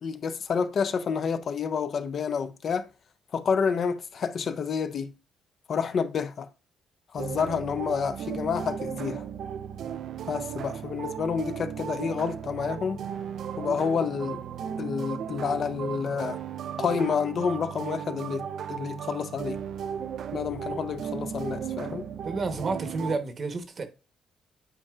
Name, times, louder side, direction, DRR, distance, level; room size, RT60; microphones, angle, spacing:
voice 1, 0.0-2.9 3.3-5.1 5.7-6.5 7.1-9.2 10.3-13.0 13.6-14.4 14.8-16.4 16.8-19.6 20.3-22.1, left 6 dB, 55° left, 0.6 m, -29 dB
sound 1, 7.2-23.2, right 8 dB, 70° right, 0.4 m, -36 dB
voice 2, 22.2-23.9, right 3 dB, 45° right, 1.0 m, -30 dB
9.2 x 4.3 x 2.4 m
cardioid pair, 90°, 0 cm